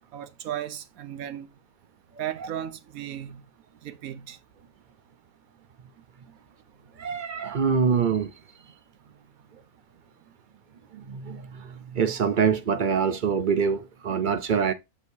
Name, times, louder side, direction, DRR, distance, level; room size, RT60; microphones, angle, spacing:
voice 1, 0.1-1.5 2.2-3.4 3.8-4.4, right 11 dB, 75° right, 1.2 m, -35 dB
voice 2, 7.0-8.3 10.9-14.7, right 6 dB, 45° right, 0.6 m, -25 dB
7.4 x 6.3 x 2.6 m
omnidirectional pair, 1.6 m